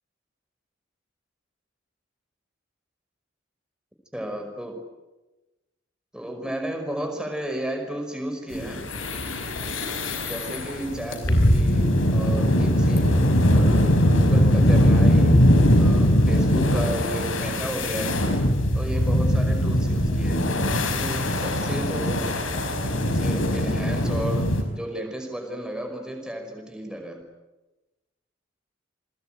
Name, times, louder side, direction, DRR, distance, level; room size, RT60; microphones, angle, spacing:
voice 1, 4.1-4.8 6.1-8.8 10.2-13.1 14.2-15.4 15.8-18.3 18.7-20.5 20.9-22.3 23.0-27.2, right 1 dB, 5° right, 4 dB, 5.3 m, -33 dB
sound 1, 8.5-24.6, equal, 90° left, 5.0 m, -21 dB
29.0 x 21.5 x 9.2 m, 1.1 s
head